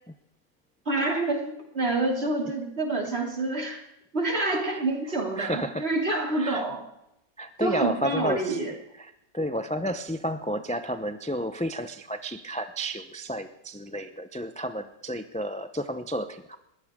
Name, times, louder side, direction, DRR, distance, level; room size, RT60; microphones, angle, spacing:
voice 1, 0.8-3.8 4.1-6.8 7.6-8.7, right 2 dB, 45° right, 1 dB, 3.1 m, -27 dB
voice 2, 5.4-5.9 6.4-6.6 7.4-8.6 9.0-16.6, equal, 10° left, 9 dB, 0.4 m, -31 dB
21.5 x 15.5 x 3.7 m, 0.82 s
omnidirectional pair, 1.5 m